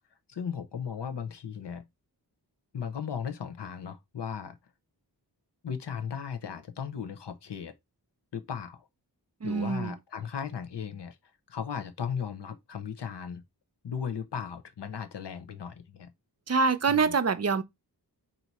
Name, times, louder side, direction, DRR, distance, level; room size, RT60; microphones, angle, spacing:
voice 1, 0.3-1.8 2.7-4.6 5.6-7.7 8.3-8.9 9.4-11.2 11.5-13.4 13.8-16.1 16.9-17.2, left 7 dB, 85° left, 0.8 m, -36 dB
voice 2, 9.4-9.9 16.5-17.6, right 4 dB, 40° right, 0.6 m, -25 dB
4.6 x 2.8 x 4.0 m
wide cardioid pair, 50°, 41 cm